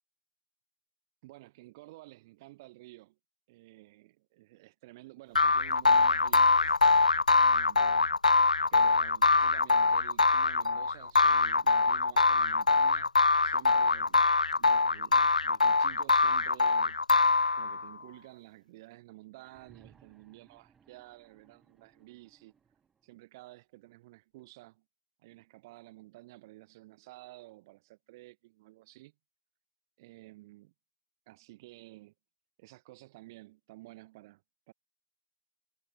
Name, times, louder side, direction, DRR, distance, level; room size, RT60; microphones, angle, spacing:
voice 1, 1.2-3.2 3.5-6.7 7.3-8.1 8.7-13.2 13.4-14.2 14.5-17.0 17.6-22.5 23.0-24.8 25.2-29.1 30.0-30.7 31.3-32.1 32.6-34.4 34.7-34.8, right 19 dB, 30° right, 3.7 m, -52 dB
sound 1, 5.3-17.9, left 4 dB, 80° left, 0.4 m, -24 dB
sound 2, 19.3-23.2 24.4-24.5, right 6 dB, 10° right, 6.3 m, -64 dB
figure-of-eight pair, 140°, 4 cm